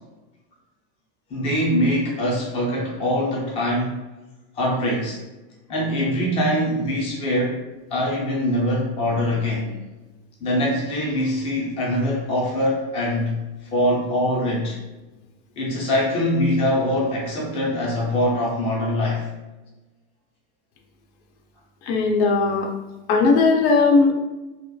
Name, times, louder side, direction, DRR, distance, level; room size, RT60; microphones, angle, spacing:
voice 1, 1.3-4.0 4.5-5.2 5.7-7.6 7.9-9.7 10.4-13.4 13.7-14.8 15.6-19.3, left 1 dB, 20° left, -3 dB, 0.4 m, -23 dB
voice 2, 21.9-22.7 23.1-24.1, left 4 dB, 75° left, 3 dB, 0.5 m, -17 dB
2.8 x 2.2 x 2.2 m, 1.1 s
cardioid pair, 165°, 32 cm